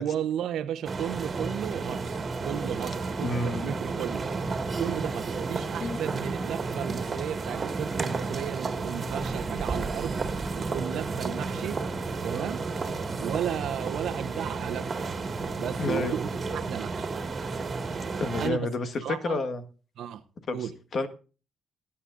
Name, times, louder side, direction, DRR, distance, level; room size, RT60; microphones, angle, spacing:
voice 1, 0.0-4.3 4.8-10.2 10.5-11.8 12.2-12.9 13.2-15.2 15.6-16.3 16.5-17.1 18.4-18.7 19.0-19.4 20.0-20.2 20.5-20.8, right 10 dB, 75° right, 0.9 m, -34 dB
sound 1, 0.9-18.5, right 4 dB, 35° right, 2.0 m, -32 dB
voice 2, 3.2-3.8 5.8-6.0 15.8-16.1 18.2-19.6 20.5-20.6 20.9-21.1, left 2 dB, 50° left, 1.6 m, -29 dB
sound 2, 10.7-17.1, left 2 dB, 30° left, 4.3 m, -48 dB
20.0 x 10.0 x 2.6 m
cardioid pair, 90°, 0 cm